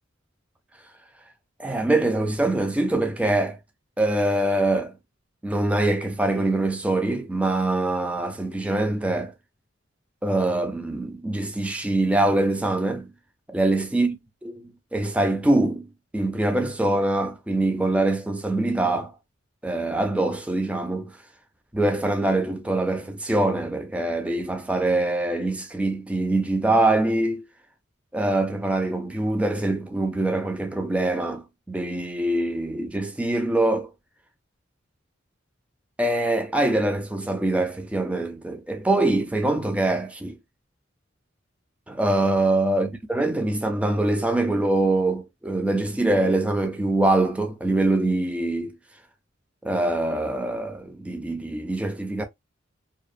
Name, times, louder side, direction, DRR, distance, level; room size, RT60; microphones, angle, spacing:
voice 1, 1.6-3.6 4.0-4.9 5.4-9.3 10.2-13.1 13.5-14.2 14.4-15.9 16.1-19.1 19.6-21.1 21.7-27.4 28.1-33.9 36.0-40.4 41.9-48.7 49.6-52.2, right 2 dB, 5° right, 0.3 m, -24 dB
2.6 x 2.0 x 2.5 m
head